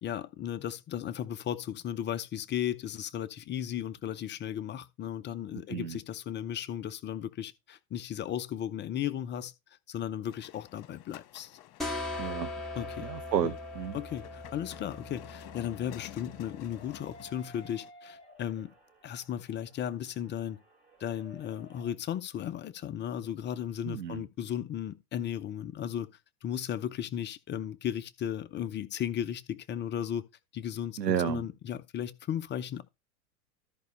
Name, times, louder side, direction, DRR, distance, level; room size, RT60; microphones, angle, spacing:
voice 1, 0.0-9.5 9.9-11.6 12.8-13.1 13.9-18.7 19.0-20.6 21.0-26.1 26.4-30.2 30.5-32.8, left 10 dB, 25° left, 0.6 m, -35 dB
voice 2, 5.7-6.0 12.2-12.5 13.0-14.0 23.8-24.2 31.0-31.4, right 9 dB, 85° right, 1.0 m, -31 dB
sound 1, 10.3-17.9, left 15 dB, 50° left, 1.6 m, -51 dB
sound 2, 11.8-17.2, left 2 dB, ahead, 1.9 m, -40 dB
sound 3, 12.3-21.9, left 1 dB, 15° right, 2.9 m, -57 dB
13.5 x 5.3 x 3.2 m
hypercardioid pair, 100°, 48 cm